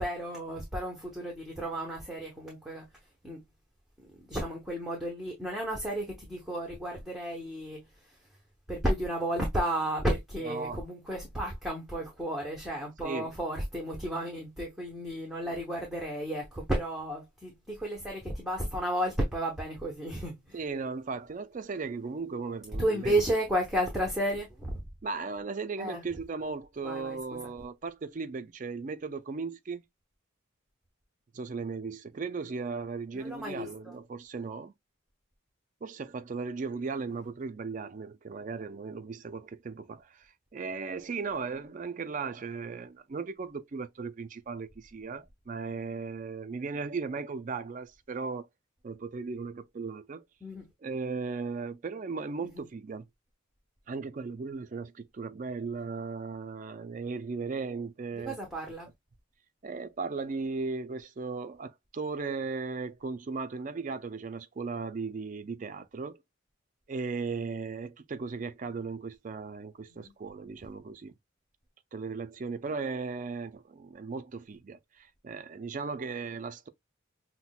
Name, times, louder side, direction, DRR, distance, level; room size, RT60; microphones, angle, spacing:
voice 1, 0.0-2.9 3.2-3.4 4.0-8.2 8.7-20.6 22.8-24.8 25.8-26.0 26.8-27.2 33.1-33.9 50.4-50.7 52.4-52.6 58.1-58.9 69.9-70.1, right 1 dB, ahead, 0.8 m, -33 dB
voice 2, 10.5-10.8 13.0-13.3 20.5-23.2 25.0-29.8 31.3-34.7 35.8-48.5 48.8-50.2 50.8-53.1 53.9-58.4 59.6-66.2 66.9-71.1 71.9-76.7, right 4 dB, 40° right, 0.3 m, -37 dB
5.7 x 2.1 x 2.3 m
head